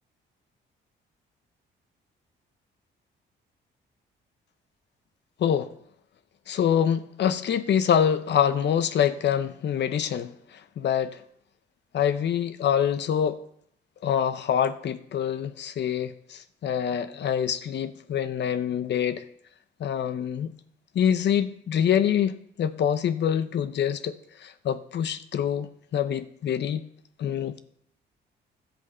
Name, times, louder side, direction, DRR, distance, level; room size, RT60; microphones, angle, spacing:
voice 1, 5.4-5.7 6.5-11.2 11.9-13.4 14.0-19.2 19.8-20.5 20.9-24.1 24.4-26.8 27.2-27.6, left 9 dB, 60° left, 0.8 m, -25 dB
11.5 x 8.1 x 5.5 m
cardioid pair, 90°, 20 cm